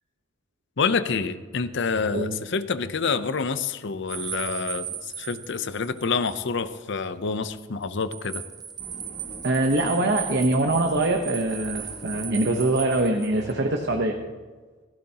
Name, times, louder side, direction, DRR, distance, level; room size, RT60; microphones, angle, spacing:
voice 1, 0.8-8.4, left 5 dB, 60° left, 13 dB, 0.7 m, -27 dB
sound 1, 4.1-6.4 6.7-6.8 7.8-13.5, right 8 dB, 20° right, 0.4 m, -37 dB
sound 2, 8.8-14.1, equal, 40° left, 3.7 m, -45 dB
voice 2, 9.4-14.2, right 2 dB, 55° right, 3 dB, 1.0 m, -23 dB
16.0 x 16.0 x 2.9 m, 1.4 s
head